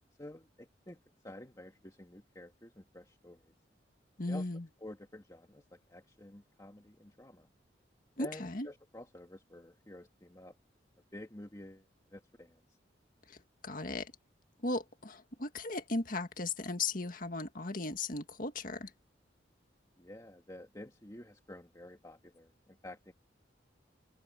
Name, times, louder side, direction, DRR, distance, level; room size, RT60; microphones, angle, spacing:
voice 1, 0.2-1.0 1.2-3.5 4.3-4.5 4.8-7.5 8.2-10.6 11.1-12.6 20.0-23.1, left 1 dB, 20° left, 2.0 m, -50 dB
voice 2, 4.2-4.7 8.2-8.7 13.3-13.4 13.6-14.1 14.6-18.9, left 2 dB, 50° left, 1.8 m, -36 dB
head